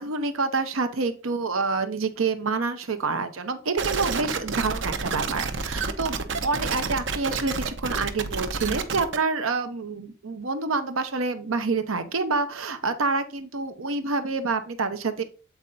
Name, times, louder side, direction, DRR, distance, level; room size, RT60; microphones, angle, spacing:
voice 1, 0.0-15.2, right 4 dB, 85° right, 9 dB, 0.9 m, -27 dB
sound 1, 3.8-9.2, right 4 dB, 60° right, 0.7 m, -29 dB
8.1 x 4.3 x 3.9 m, 0.36 s
head